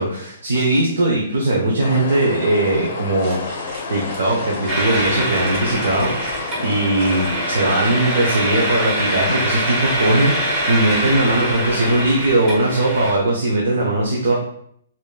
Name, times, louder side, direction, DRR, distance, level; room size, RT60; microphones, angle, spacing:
voice 1, 0.0-3.6 3.9-14.3, right 2 dB, 80° right, -2 dB, 0.8 m, -19 dB
sound 1, 1.8-12.1, left 5 dB, 55° left, 0.5 m, -30 dB
sound 2, 2.7-8.0, right 1 dB, 50° right, 1.5 m, -36 dB
sound 3, 4.7-13.1, right 1 dB, 25° right, 1.0 m, -24 dB
5.1 x 2.9 x 2.2 m, 0.68 s
hypercardioid pair, 150°, 0 cm